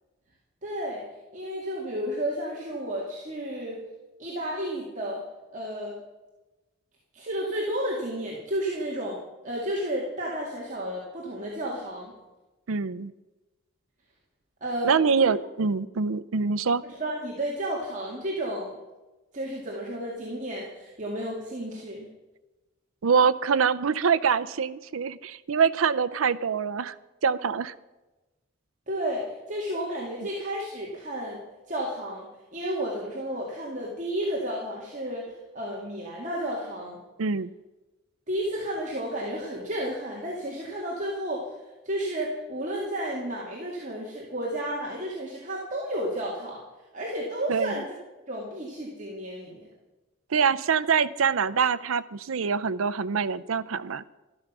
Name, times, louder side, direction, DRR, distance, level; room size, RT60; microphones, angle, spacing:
voice 1, 0.6-1.1 1.3-3.8 4.2-5.2 5.5-6.0 7.1-12.1 14.6-15.3 16.8-18.8 19.3-22.1 28.9-37.0 38.3-41.6 41.8-46.6 46.9-47.9 48.3-49.7, right 1 dB, 40° right, -4 dB, 2.3 m, -32 dB
voice 2, 12.7-13.1 14.8-16.8 23.0-27.0 27.2-27.7 37.2-37.5 47.5-47.8 50.3-54.0, right 6 dB, 90° right, 14 dB, 0.6 m, -24 dB
13.0 x 12.5 x 6.1 m, 1.1 s
head